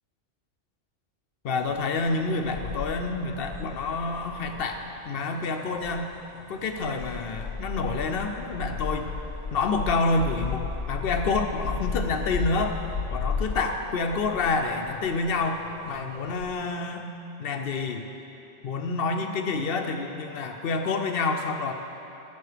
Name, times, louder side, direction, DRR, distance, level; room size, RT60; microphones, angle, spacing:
voice 1, 1.4-6.1 6.5-9.1 9.5-12.8 13.1-17.1 17.4-18.1 18.6-21.7, left 3 dB, 60° left, 5 dB, 0.8 m, -28 dB
sound 1, 1.5-16.5, left 5 dB, 90° left, 1.1 m, -35 dB
14.0 x 5.5 x 5.0 m, 2.9 s
omnidirectional pair, 1.2 m